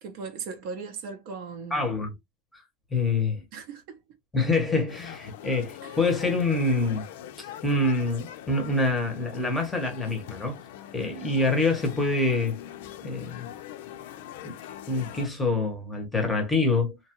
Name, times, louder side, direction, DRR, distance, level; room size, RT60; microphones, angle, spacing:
voice 1, 0.0-1.8 3.5-4.0 5.8-6.0, right 5 dB, 50° right, 0.6 m, -38 dB
voice 2, 1.7-2.1 2.5-2.6 2.9-3.4 4.3-7.1 7.4-10.6 10.9-12.6 13.0-13.5 14.4-14.6 14.9-17.0, left 3 dB, 5° left, 0.8 m, -26 dB
sound 1, 4.9-15.3, left 11 dB, 70° left, 0.5 m, -43 dB
2.7 x 2.3 x 2.8 m
supercardioid pair, 165°, 0 cm